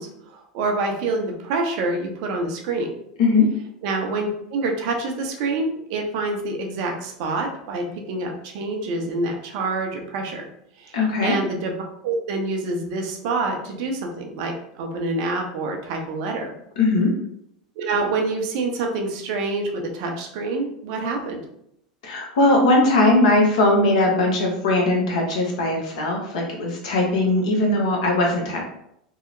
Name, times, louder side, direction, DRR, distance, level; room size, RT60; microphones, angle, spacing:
voice 1, 0.0-2.9 3.8-10.5 10.8-11.7 12.0-16.5 17.8-21.4, right 3 dB, 60° right, 3 dB, 0.5 m, -27 dB
voice 2, 10.9-11.4 16.8-17.1 22.0-28.6, left 2 dB, 70° left, 0 dB, 0.8 m, -19 dB
2.8 x 2.0 x 2.5 m, 0.74 s
hypercardioid pair, 90°, 4 cm